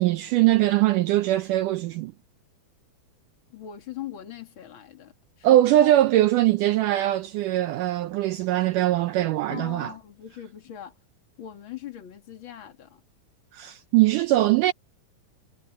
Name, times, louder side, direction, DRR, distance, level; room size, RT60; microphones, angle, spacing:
voice 1, 0.0-2.1 5.4-9.9 13.5-14.7, right 14 dB, 80° right, 2.0 m, -21 dB
voice 2, 3.5-5.9 9.5-11.0 11.4-13.0, left 10 dB, 40° left, 2.5 m, -40 dB
omnidirectional pair, 4.2 m